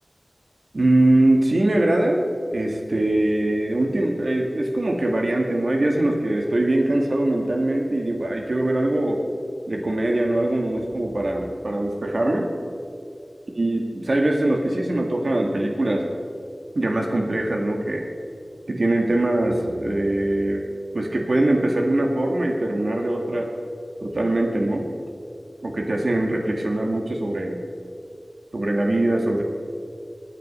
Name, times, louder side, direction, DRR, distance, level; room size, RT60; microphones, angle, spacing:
voice 1, 0.7-9.2 9.7-12.5 13.6-16.1 16.7-18.0 18.7-20.6 20.9-23.5 24.0-24.9 25.6-27.6 28.5-29.4, right 1 dB, 70° right, 1 dB, 2.0 m, -22 dB
21.5 x 9.4 x 5.6 m, 2.4 s
wide cardioid pair, 55°, 0 cm